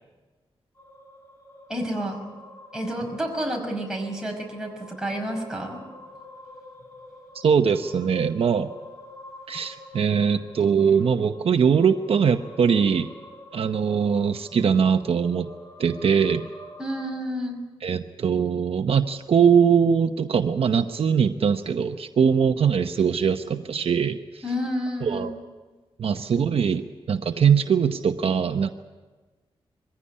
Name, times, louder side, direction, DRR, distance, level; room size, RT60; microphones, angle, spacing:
sound 1, 0.7-17.1, left 1 dB, 25° left, 4.5 m, -47 dB
voice 1, 1.7-2.3 2.7-5.8 16.8-17.6 24.4-25.3, equal, 5° right, 1 dB, 5.5 m, -30 dB
voice 2, 7.4-8.7 9.5-13.1 13.5-15.5 15.8-16.4 17.8-24.4 25.0-25.3 26.0-26.8 27.1-28.7, right 7 dB, 70° right, 7 dB, 0.9 m, -21 dB
23.0 x 16.0 x 9.8 m, 1.3 s
wide cardioid pair, 120°, 10 cm